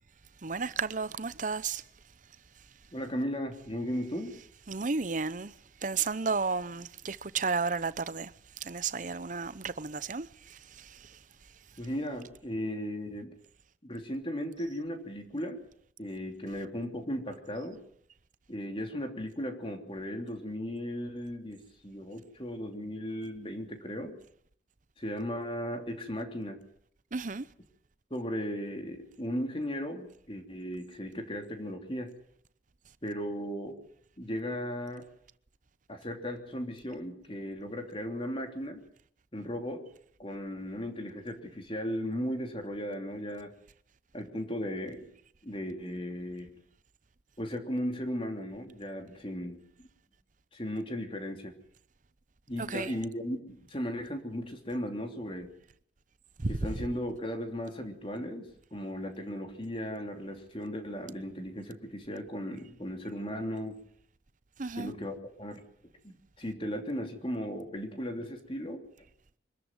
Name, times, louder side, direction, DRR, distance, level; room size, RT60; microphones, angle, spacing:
voice 1, 0.4-1.8 4.7-5.5 5.8-8.3 8.6-11.0 27.1-27.5 52.6-52.9 56.4-56.6 64.6-64.9, right 4 dB, 45° right, 0.8 m, -33 dB
voice 2, 2.9-4.4 11.8-13.3 13.8-15.6 16.0-17.8 18.5-24.2 25.0-26.6 28.1-32.1 33.0-33.8 34.2-35.0 35.9-38.8 39.3-39.8 40.2-43.5 44.1-45.1 45.4-46.5 47.4-49.6 50.5-51.5 52.5-55.5 56.5-63.8 64.7-65.6 66.0-68.8, equal, 30° left, 3.1 m, -36 dB
24.5 x 13.5 x 9.2 m
head